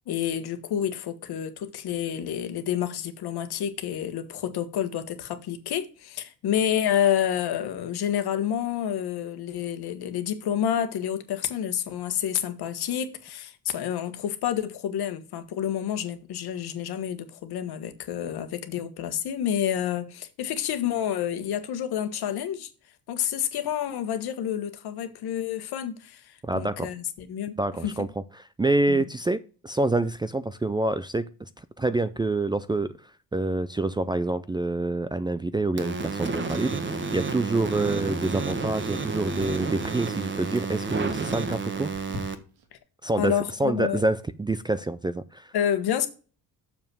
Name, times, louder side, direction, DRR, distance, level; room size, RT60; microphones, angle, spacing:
voice 1, 0.1-22.7 23.1-27.5 27.8-27.9 28.9-29.0 43.2-44.0 45.5-46.1, left 10 dB, 75° left, 1.4 m, -29 dB
voice 2, 26.4-26.9 27.6-28.1 28.3-33.0 33.3-36.8 37.1-41.9 43.0-45.5, right 2 dB, 10° right, 0.4 m, -27 dB
sound 1, 35.8-42.3, right 4 dB, 30° right, 1.3 m, -31 dB
Chewing mastication, 37.7-38.6 38.9-39.8 40.3-40.7 41.3-42.7, right 1 dB, 80° right, 2.1 m, -44 dB
7.1 x 5.5 x 6.1 m
cardioid pair, 130°, 39 cm